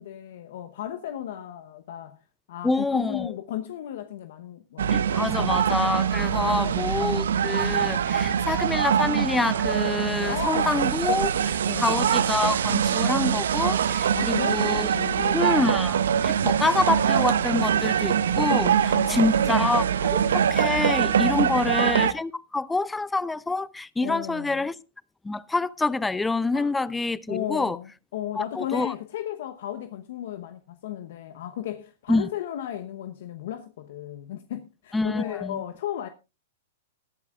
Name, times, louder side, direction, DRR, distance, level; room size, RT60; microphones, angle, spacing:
voice 1, 0.0-2.2 2.5-5.4 6.3-7.1 10.3-10.8 11.7-12.0 13.8-15.6 18.9-19.9 21.2-21.8 24.0-24.7 26.5-26.7 27.3-36.1, left 11 dB, 65° left, 1.0 m, -35 dB
voice 2, 2.6-3.3 4.9-11.3 11.8-14.9 15.3-24.8 25.2-27.8 28.4-28.9 32.1-32.3 34.9-35.6, left 3 dB, 10° left, 0.6 m, -27 dB
sound 1, 4.8-22.1, right 8 dB, 75° right, 0.8 m, -23 dB
19.5 x 10.5 x 2.4 m
hypercardioid pair, 115°, 0 cm